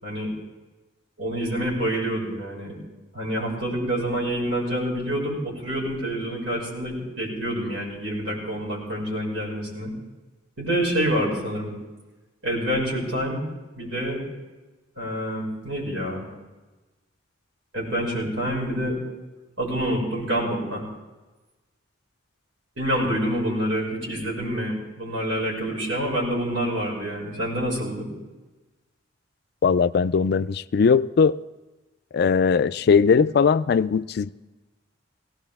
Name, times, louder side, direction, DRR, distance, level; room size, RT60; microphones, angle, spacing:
voice 1, 1.2-2.8 3.1-9.9 10.6-11.7 12.4-13.4 13.8-14.2 15.0-16.3 17.7-19.0 19.6-20.8 22.8-28.1, equal, 90° right, 5.8 m, -27 dB
voice 2, 29.6-31.4 32.1-34.3, left 5 dB, 55° left, 0.3 m, -19 dB
18.0 x 17.5 x 3.5 m
head